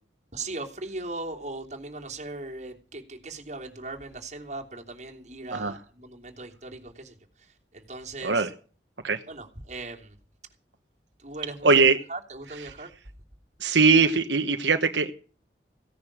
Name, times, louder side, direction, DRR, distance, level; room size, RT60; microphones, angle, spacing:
voice 1, 0.3-8.5 9.3-10.2 11.2-11.8 12.1-12.9, right 2 dB, 40° right, 0 dB, 3.0 m, -39 dB
voice 2, 11.6-12.0 13.6-15.1, right 4 dB, 90° right, 6 dB, 1.2 m, -20 dB
16.5 x 10.0 x 6.2 m, 0.40 s
head